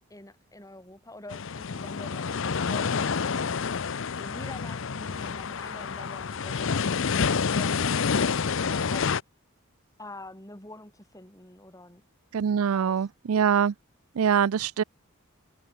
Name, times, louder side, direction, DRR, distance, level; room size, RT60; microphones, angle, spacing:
voice 1, 0.1-9.1 10.0-12.0 12.5-13.1, left 2 dB, 15° left, 4.7 m, -46 dB
sound 1, 1.3-9.2, left 5 dB, 60° left, 0.6 m, -28 dB
voice 2, 12.3-13.7 14.2-14.8, right 7 dB, 75° right, 0.4 m, -24 dB
head